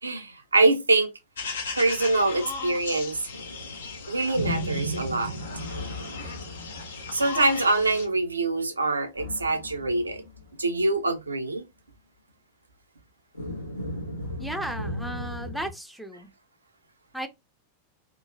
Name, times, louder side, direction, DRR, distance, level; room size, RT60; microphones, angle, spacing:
voice 1, 0.0-1.1 1.7-3.2 4.1-5.4 7.1-10.2 10.6-11.6, right 2 dB, 80° right, 0.4 m, -24 dB
sound 1, 1.4-8.1, left 5 dB, 65° left, 0.6 m, -37 dB
sound 2, 3.3-8.2 9.2-10.4 10.7-10.8 13.3-15.7, equal, 85° left, 1.0 m, -35 dB
voice 2, 14.4-16.3 17.1-17.3, equal, ahead, 0.5 m, -35 dB
2.9 x 2.2 x 2.5 m
figure-of-eight pair, 90°, 0 cm